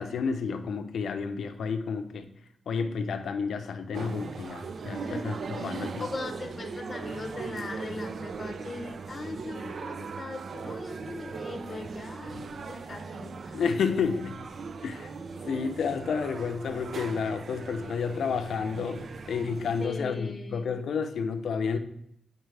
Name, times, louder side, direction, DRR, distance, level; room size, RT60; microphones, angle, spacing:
voice 1, 0.0-2.3 2.7-6.1 13.5-14.4 14.8-15.1 15.5-21.8, left 5 dB, 90° left, 8 dB, 0.5 m, -30 dB
sound 1, 3.9-19.9, right 5 dB, 60° right, 0.4 m, -39 dB
voice 2, 5.0-13.6 19.8-20.8, left 3 dB, 30° left, 4 dB, 0.8 m, -40 dB
9.1 x 4.4 x 3.3 m, 0.74 s
wide cardioid pair, 135°, 0 cm